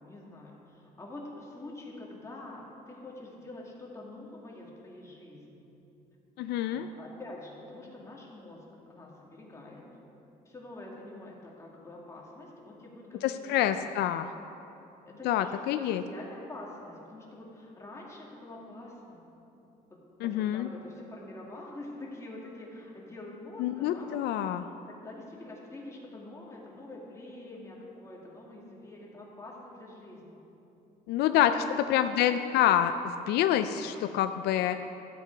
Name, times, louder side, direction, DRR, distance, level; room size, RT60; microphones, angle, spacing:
voice 1, 0.0-5.6 6.7-9.8 10.5-14.1 15.0-19.2 19.9-30.4 31.4-31.8 32.1-32.6 33.7-34.2, left 2 dB, 15° left, -3 dB, 2.1 m, -46 dB
voice 2, 6.4-6.9 13.2-14.3 15.2-16.0 20.2-20.7 23.6-24.6 31.1-31.5 31.9-32.9 33.3-34.8, left 12 dB, 75° left, 10 dB, 0.4 m, -27 dB
13.0 x 7.8 x 4.6 m, 2.9 s
cardioid pair, 110°, 17 cm